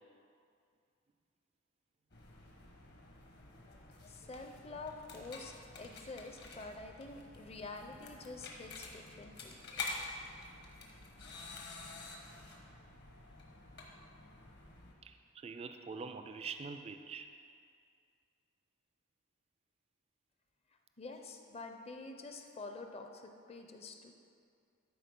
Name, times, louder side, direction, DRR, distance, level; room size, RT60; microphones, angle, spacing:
sound 1, 2.1-14.9, left 3 dB, 50° left, 1.1 m, -48 dB
voice 1, 4.1-9.6 21.0-24.1, left 3 dB, 30° left, 5 dB, 0.6 m, -47 dB
voice 2, 15.0-17.3, right 5 dB, 30° right, 8 dB, 0.3 m, -44 dB
11.5 x 4.6 x 5.3 m, 2.4 s
head